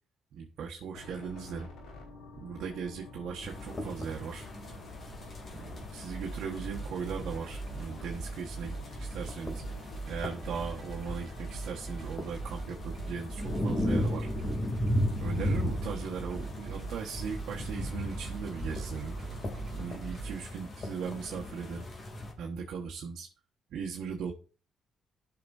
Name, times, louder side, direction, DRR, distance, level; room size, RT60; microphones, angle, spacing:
voice 1, 0.3-1.7 2.4-4.5 5.5-9.6 10.1-14.3 15.2-19.1 19.7-21.8 22.4-23.3 23.7-24.3, right 6 dB, 75° right, -1 dB, 1.3 m, -38 dB
sound 1, 0.9-19.9, left 2 dB, 90° left, 4.2 m, -49 dB
sound 2, 3.4-22.3, left 1 dB, 40° left, 2.8 m, -36 dB
sound 3, 6.0-20.5, right 4 dB, 40° right, 3.4 m, -41 dB
15.5 x 6.0 x 2.6 m, 0.37 s
cardioid pair, 90°, 0 cm